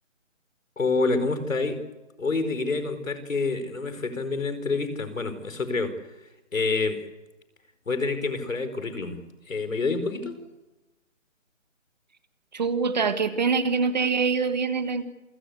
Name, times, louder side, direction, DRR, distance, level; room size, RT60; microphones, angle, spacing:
voice 1, 0.8-1.8 2.2-5.9 6.5-7.0 7.9-9.2 9.5-10.3, left 3 dB, 80° left, 10 dB, 4.9 m, -27 dB
voice 2, 12.5-15.0, right 5 dB, 35° right, 10 dB, 1.7 m, -24 dB
27.5 x 17.0 x 8.2 m, 1.0 s
hypercardioid pair, 170°, 39 cm